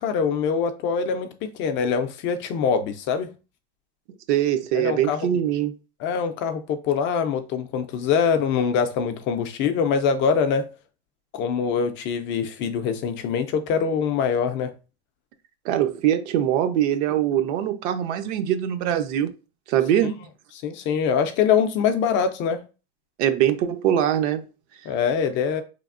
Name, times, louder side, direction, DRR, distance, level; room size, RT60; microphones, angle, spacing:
voice 1, 0.0-3.3 4.7-5.3 6.0-10.7 11.3-14.7 20.6-22.6 24.9-25.6, left 6 dB, 35° left, 0.4 m, -24 dB
voice 2, 4.3-5.7 15.6-19.3 19.7-20.2 23.2-24.4, right 11 dB, 70° right, 0.7 m, -22 dB
4.0 x 3.3 x 2.5 m
supercardioid pair, 145°, 35 cm